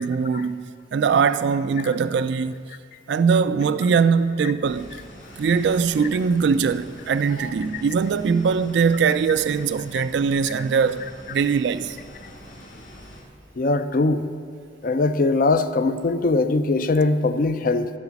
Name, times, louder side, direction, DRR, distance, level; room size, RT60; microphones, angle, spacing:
voice 1, 0.0-2.5 3.1-5.0 5.4-12.0, right 5 dB, 65° right, 0.3 m, -21 dB
sound 1, 4.6-13.2, equal, 80° left, 2.3 m, -44 dB
voice 2, 13.6-14.3 14.8-17.9, left 3 dB, 50° left, 0.5 m, -21 dB
14.5 x 4.9 x 7.0 m
head